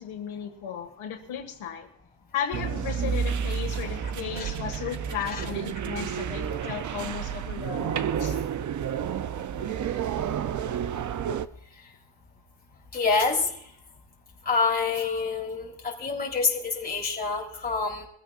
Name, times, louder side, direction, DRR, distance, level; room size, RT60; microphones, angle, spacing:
voice 1, 0.0-1.9 2.3-8.4, left 8 dB, 75° left, 3 dB, 2.0 m, -35 dB
sound 1, 2.5-11.5, right 8 dB, 40° right, 0.5 m, -30 dB
voice 2, 4.8-5.4 9.6-9.7 12.9-13.5 14.5-18.0, left 4 dB, 20° left, -3 dB, 3.5 m, -27 dB
23.5 x 15.0 x 2.5 m, 0.68 s
cardioid pair, 135°, 49 cm